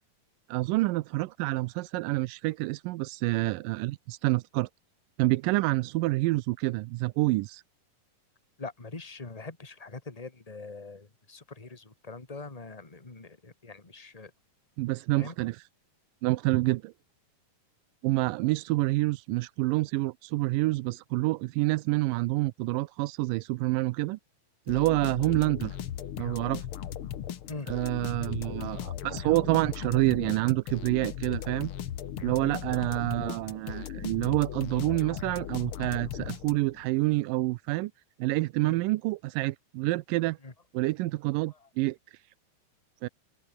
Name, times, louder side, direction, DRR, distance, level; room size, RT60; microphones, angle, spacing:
voice 1, 0.5-4.7 5.2-7.6 14.8-15.7 16.2-16.9 18.0-24.2 24.7-25.8 26.2-26.7 27.7-31.7 32.2-37.9 38.2-40.4 40.7-42.2 43.0-43.1, right 20 dB, 90° right, 2.3 m, -28 dB
voice 2, 8.6-14.3 15.2-15.3 18.2-18.3 25.0-25.1 27.5-27.7 32.4-32.5 38.6-38.8 40.4-40.5 41.6-41.7, left 3 dB, 15° left, 1.7 m, -43 dB
sound 1, 24.7-36.9, left 10 dB, 55° left, 1.6 m, -37 dB
open air
omnidirectional pair, 3.8 m